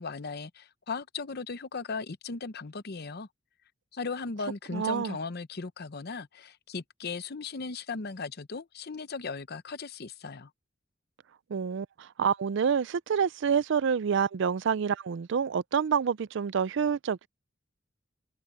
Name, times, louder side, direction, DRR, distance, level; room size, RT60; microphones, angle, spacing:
voice 1, 0.0-3.3 3.9-10.5, left 4 dB, 55° left, 0.8 m, -37 dB
voice 2, 4.7-5.2 11.5-17.3, right 7 dB, 65° right, 0.4 m, -27 dB
head